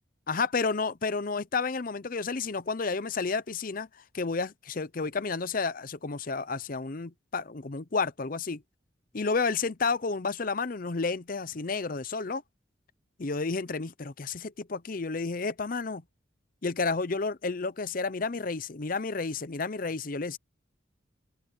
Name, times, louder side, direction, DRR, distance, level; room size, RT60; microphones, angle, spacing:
voice 1, 0.3-8.6 9.1-12.4 13.2-16.0 16.6-20.4, left 4 dB, 45° left, 0.7 m, -31 dB
head